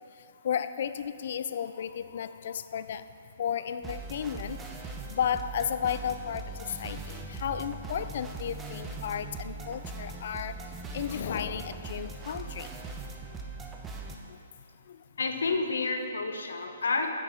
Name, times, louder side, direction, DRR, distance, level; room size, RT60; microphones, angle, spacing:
voice 1, 0.4-3.0 3.4-4.6 5.1-10.6 10.9-12.7 14.9-15.0, left 8 dB, 55° left, 13 dB, 0.4 m, -33 dB
sound 1, 3.8-14.2, right 3 dB, 10° right, 0.7 m, -40 dB
voice 2, 15.2-17.1, left 3 dB, 85° left, 5 dB, 0.9 m, -29 dB
8.4 x 5.7 x 6.4 m, 2.7 s
hypercardioid pair, 150°, 0 cm